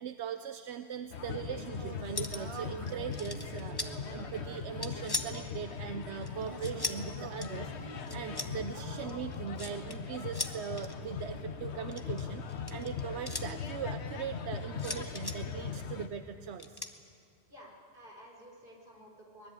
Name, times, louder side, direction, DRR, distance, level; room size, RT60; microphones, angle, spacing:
voice 1, 0.0-16.8, right 8 dB, 85° right, 9 dB, 1.0 m, -40 dB
Singing, 1.0-10.1, right 4 dB, 30° right, 0.8 m, -48 dB
sound 1, 1.1-16.1, left 6 dB, 85° left, 1.3 m, -40 dB
sound 2, 2.2-2.6 2.9-3.9 4.5-5.5 6.2-7.0 7.4-7.5 8.1-8.5 9.1-10.0 10.3-10.9 11.8-13.5 14.8-15.4 16.6-16.9, left 2 dB, 20° left, 1.2 m, -38 dB
voice 2, 17.5-19.5, equal, 55° right, -1 dB, 4.8 m, -53 dB
24.0 x 20.5 x 8.9 m, 2.4 s
omnidirectional pair, 1.1 m